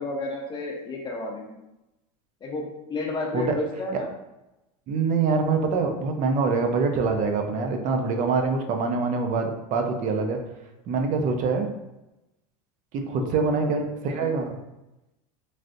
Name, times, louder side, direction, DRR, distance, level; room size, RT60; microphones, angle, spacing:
voice 1, 0.0-1.6 2.4-2.6 2.9-4.1 13.0-13.8 14.1-14.3, left 2 dB, 25° left, -1 dB, 0.7 m, -32 dB
voice 2, 4.9-10.4 10.9-11.7 13.1-14.6, right 4 dB, 40° right, 4 dB, 0.5 m, -25 dB
3.2 x 2.5 x 2.6 m, 0.95 s
supercardioid pair, 120°, 20 cm